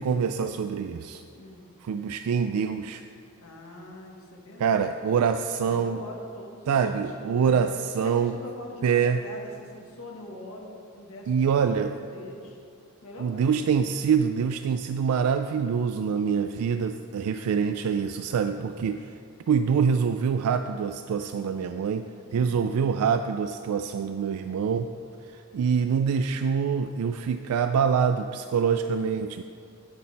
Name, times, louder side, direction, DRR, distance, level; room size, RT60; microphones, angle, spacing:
voice 1, 0.0-1.2 1.8-3.0 4.6-6.0 6.7-8.3 8.8-9.2 11.3-12.0 13.2-19.1 19.5-22.1 22.3-24.9 25.3-29.4, right 6 dB, 85° right, 8 dB, 0.3 m, -25 dB
voice 2, 1.3-1.7 3.4-5.3 5.6-7.6 8.0-12.6 13.0-14.0 22.2-22.8, left 1 dB, 70° left, -1 dB, 1.6 m, -43 dB
9.8 x 7.6 x 4.1 m, 2.4 s
head